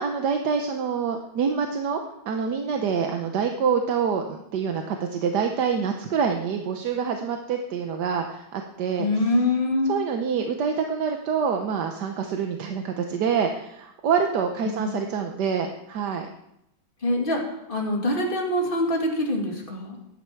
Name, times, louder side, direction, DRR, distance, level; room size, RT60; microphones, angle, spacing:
voice 1, 0.0-2.0 2.2-9.1 9.9-16.3, right 6 dB, 60° right, 4 dB, 1.4 m, -26 dB
voice 2, 9.0-10.0 14.6-15.0 17.0-17.4 17.7-20.0, left 1 dB, 25° left, -1 dB, 2.6 m, -24 dB
15.0 x 11.0 x 4.6 m, 0.83 s
omnidirectional pair, 2.3 m